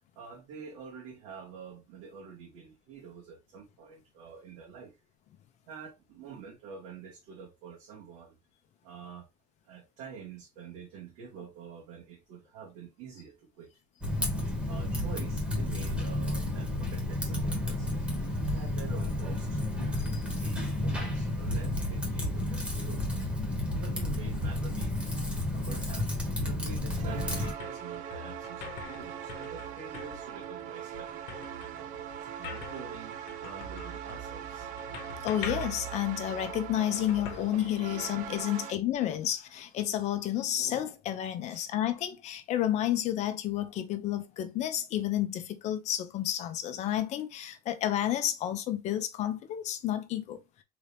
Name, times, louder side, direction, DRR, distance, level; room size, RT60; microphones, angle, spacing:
voice 1, 0.2-5.0 5.7-8.4 8.8-9.3 9.6-13.7 14.7-18.1 18.5-19.6 20.1-23.1 23.7-25.1 25.5-31.1 32.4-34.7 38.5-39.1 41.5-41.7, right 6 dB, 90° right, 1.8 m, -47 dB
Typing, 14.0-27.5, left 1 dB, 5° right, 1.2 m, -31 dB
sound 1, 26.8-38.3, left 2 dB, 65° left, 1.1 m, -44 dB
sound 2, 26.9-38.7, right 9 dB, 45° right, 0.5 m, -41 dB
voice 2, 35.2-50.4, left 12 dB, 40° left, 0.7 m, -31 dB
3.9 x 2.8 x 3.4 m
cardioid pair, 165°, 18 cm